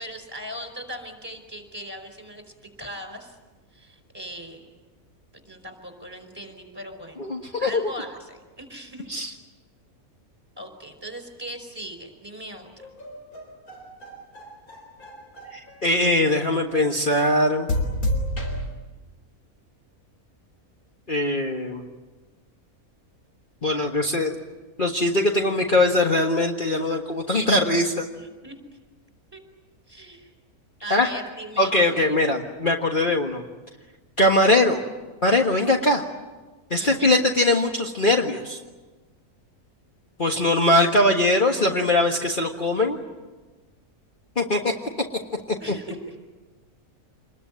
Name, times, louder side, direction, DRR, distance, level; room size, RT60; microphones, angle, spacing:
voice 1, 0.0-2.4 2.8-3.4 3.7-4.6 5.4-7.2 7.6-9.4 10.6-12.7 28.1-28.6 29.3-29.4 29.9-30.3 30.8-32.5 36.8-37.2 45.6-46.1, right 1 dB, 15° right, 7 dB, 5.0 m, -39 dB
voice 2, 7.2-7.8 9.1-9.3 15.5-17.7 21.1-21.8 23.6-24.3 24.8-28.1 30.9-31.1 31.6-33.4 34.2-34.8 35.2-36.0 36.7-38.6 40.2-43.0 44.4-44.7, left 1 dB, 35° left, 1 dB, 1.8 m, -21 dB
sound 1, 12.8-15.8 16.4-17.0 17.7-18.7, left 1 dB, 80° left, 4.7 m, -30 dB
27.5 x 21.5 x 9.4 m, 1.2 s
omnidirectional pair, 1.5 m